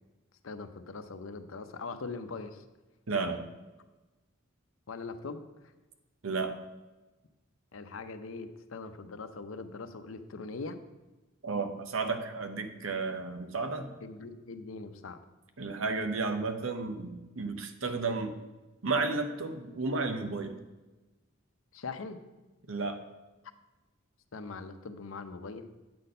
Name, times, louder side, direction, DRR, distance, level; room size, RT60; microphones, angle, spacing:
voice 1, 0.4-2.6 4.9-5.7 7.7-10.8 14.0-15.2 21.7-22.2 24.3-25.7, left 4 dB, 85° left, 9 dB, 0.7 m, -41 dB
voice 2, 3.1-3.4 6.2-6.6 11.4-13.9 15.6-18.3 18.8-20.6 22.7-23.0, right 3 dB, 85° right, 8 dB, 0.9 m, -32 dB
8.5 x 4.2 x 6.5 m, 1.1 s
head